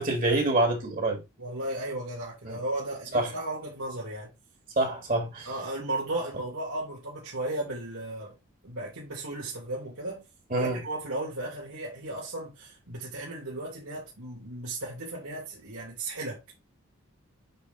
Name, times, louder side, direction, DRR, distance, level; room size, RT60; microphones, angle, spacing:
voice 1, 0.0-1.2 2.5-2.6 3.1-3.3 4.8-5.5 10.5-10.8, right 2 dB, 40° right, 1.9 m, -26 dB
voice 2, 1.4-4.3 5.4-8.3 8.6-10.2 10.5-16.4, right 2 dB, 80° right, 3.1 m, -35 dB
8.8 x 4.1 x 3.9 m
head